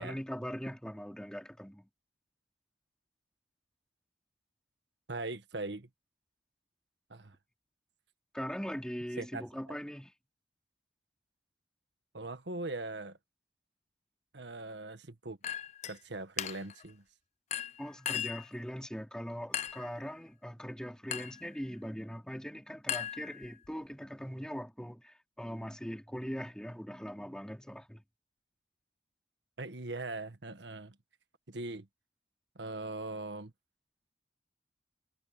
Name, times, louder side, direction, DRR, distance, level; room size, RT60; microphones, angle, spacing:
voice 1, 0.0-1.9 8.3-10.1 17.8-28.0, equal, 5° left, 3.3 m, -41 dB
voice 2, 5.1-5.9 7.1-7.4 9.2-9.4 12.1-13.2 14.3-15.4 15.8-17.0 29.6-30.9 31.5-31.9 32.5-33.5, right 2 dB, 80° right, 1.6 m, -40 dB
Chink clink, 15.4-16.0 16.4-16.8 17.5-18.5 19.5-19.9 21.1-21.4 22.9-23.7, left 10 dB, 40° left, 0.4 m, -37 dB
head